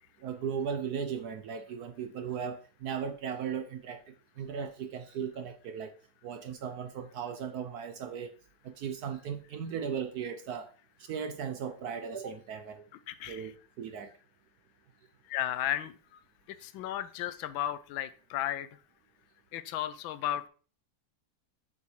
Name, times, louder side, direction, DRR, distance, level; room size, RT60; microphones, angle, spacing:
voice 1, 0.2-5.9 6.2-8.3 8.6-10.7 11.1-12.9 13.3-14.1, right 7 dB, 70° right, 1.0 m, -37 dB
voice 2, 13.1-13.5 15.3-15.9 16.6-18.7 19.5-20.5, left 12 dB, 85° left, 1.4 m, -34 dB
6.9 x 6.6 x 3.2 m
omnidirectional pair, 2.1 m